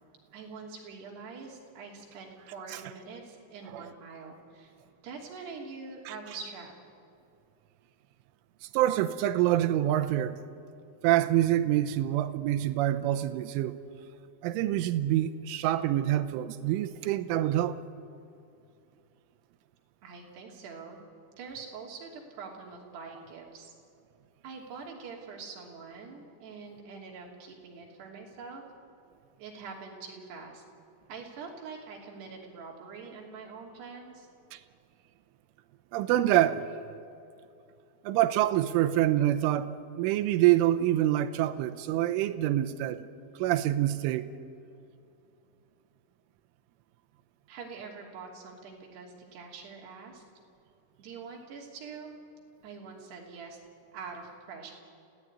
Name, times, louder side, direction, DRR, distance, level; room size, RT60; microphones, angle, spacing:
voice 1, 0.3-4.7 5.0-6.7 20.0-21.0 21.4-23.7 24.4-28.6 29.4-30.6 31.1-34.3 47.5-50.2 51.0-52.1 52.6-53.6 53.9-54.7, right 5 dB, 60° right, 4.9 m, -44 dB
voice 2, 8.6-10.4 11.0-13.8 14.4-17.8 34.5-34.6 35.9-36.7 38.0-43.0 43.4-44.3, right 13 dB, 90° right, 3.3 m, -26 dB
29.0 x 16.5 x 9.7 m
omnidirectional pair, 5.6 m